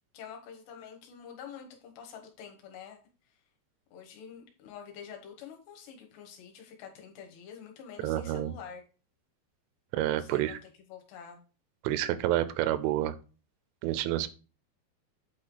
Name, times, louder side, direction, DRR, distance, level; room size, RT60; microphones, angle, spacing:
voice 1, 0.1-3.0 3.9-8.8 10.2-11.4, left 7 dB, 70° left, 2 dB, 3.2 m, -47 dB
voice 2, 8.0-8.5 9.9-10.6 11.8-13.1 13.8-14.3, right 14 dB, 90° right, 14 dB, 3.1 m, -29 dB
8.8 x 4.3 x 3.9 m, 0.34 s
omnidirectional pair, 5.3 m